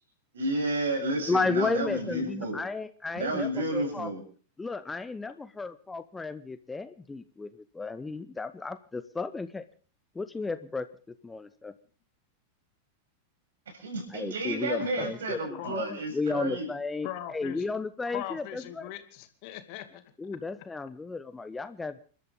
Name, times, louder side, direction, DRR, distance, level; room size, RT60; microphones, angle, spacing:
voice 1, 0.3-2.6 3.1-4.2 13.7-16.7, right 1 dB, 65° right, 4 dB, 7.6 m, -31 dB
voice 2, 1.3-4.1 4.6-9.7 10.1-11.7 14.1-15.4 15.7-18.9 20.2-22.0, left 3 dB, 10° left, 13 dB, 0.9 m, -33 dB
voice 3, 17.0-17.6 18.1-20.0, left 13 dB, 45° left, 8 dB, 2.4 m, -40 dB
29.5 x 13.0 x 3.6 m, 0.41 s
figure-of-eight pair, 90°, 0 cm